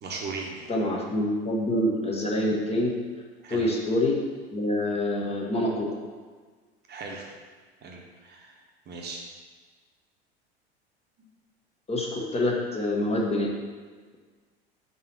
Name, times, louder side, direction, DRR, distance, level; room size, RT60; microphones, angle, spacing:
voice 1, 0.0-0.7 3.4-3.7 6.9-7.3 7.8-8.6 8.9-9.2, right 4 dB, 30° right, 0 dB, 1.1 m, -38 dB
voice 2, 0.7-2.9 3.5-4.2 4.5-6.0 11.9-13.5, left 1 dB, 20° left, -2 dB, 1.1 m, -26 dB
4.8 x 4.0 x 5.8 m, 1.5 s
figure-of-eight pair, 80°, 31 cm